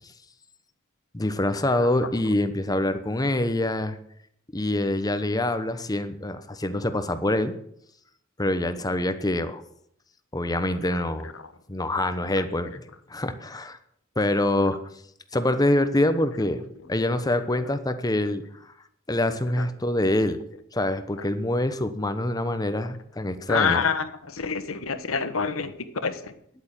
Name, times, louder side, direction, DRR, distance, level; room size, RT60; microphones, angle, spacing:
voice 1, 1.1-4.0 4.5-7.5 8.4-9.6 10.3-11.3 11.7-12.8 13.1-13.8 14.2-14.8 15.3-18.4 19.1-20.4 20.7-23.8, left 1 dB, 20° left, 10 dB, 0.9 m, -25 dB
voice 2, 23.5-25.7 26.0-26.3, left 5 dB, 90° left, 10 dB, 1.2 m, -27 dB
10.5 x 8.6 x 8.8 m, 0.70 s
head